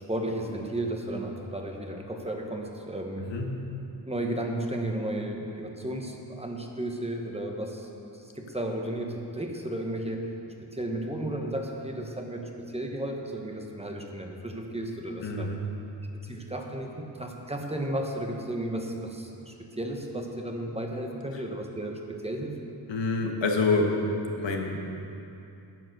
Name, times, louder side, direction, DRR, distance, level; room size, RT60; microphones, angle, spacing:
voice 1, 0.0-3.3 4.1-10.3 10.6-15.5 16.2-22.5, right 1 dB, 15° right, 2 dB, 1.1 m, -34 dB
voice 2, 15.2-15.6 22.9-23.9 24.4-24.8, left 3 dB, 80° left, 2 dB, 1.5 m, -26 dB
11.0 x 8.6 x 6.6 m, 2.8 s
wide cardioid pair, 120°, 43 cm